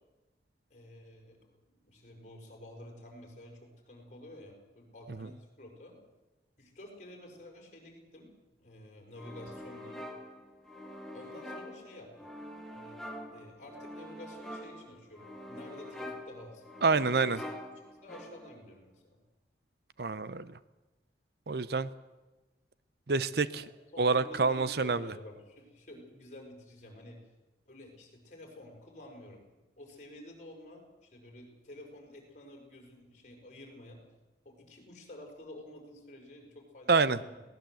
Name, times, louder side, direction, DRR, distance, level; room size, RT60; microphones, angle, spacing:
voice 1, 0.7-1.4 1.6-6.0 6.6-8.3 8.6-10.0 11.1-12.3 12.7-13.0 13.3-16.6 17.0-17.5 18.0-19.2 23.5-27.2 27.7-29.4 29.8-34.0 34.4-37.4, left 1 dB, 40° left, 1 dB, 5.7 m, -50 dB
sound 1, 9.2-18.7, left 1 dB, ahead, 1.8 m, -45 dB
voice 2, 16.8-17.4 20.0-20.5 21.5-21.9 23.1-23.6 24.0-25.0 36.9-37.2, right 4 dB, 55° right, 15 dB, 0.7 m, -27 dB
22.0 x 18.0 x 7.8 m, 1.1 s
head